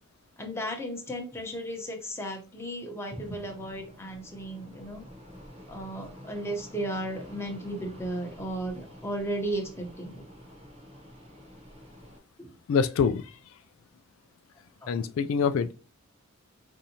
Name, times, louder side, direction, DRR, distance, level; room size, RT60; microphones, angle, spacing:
voice 1, 0.4-5.0 5.7-10.2 12.4-12.5 14.8-14.9, right 1 dB, 15° left, 0.8 m, -35 dB
Fixed-wing aircraft airplane, 3.1-12.2, equal, 30° right, 0.9 m, -49 dB
voice 2, 12.7-13.6 14.9-15.7, left 6 dB, 85° left, 0.3 m, -26 dB
4.7 x 2.7 x 2.8 m
head